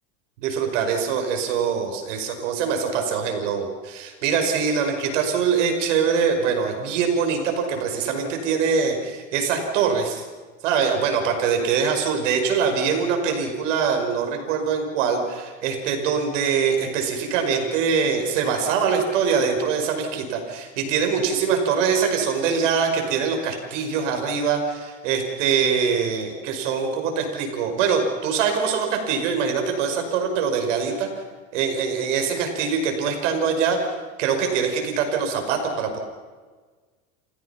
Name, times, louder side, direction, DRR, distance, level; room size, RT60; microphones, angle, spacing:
voice 1, 0.4-10.3 10.6-31.1 31.5-33.8 34.2-36.0, right 6 dB, 80° right, 4 dB, 5.6 m, -23 dB
29.5 x 16.5 x 5.9 m, 1.4 s
supercardioid pair, 95°, 36 cm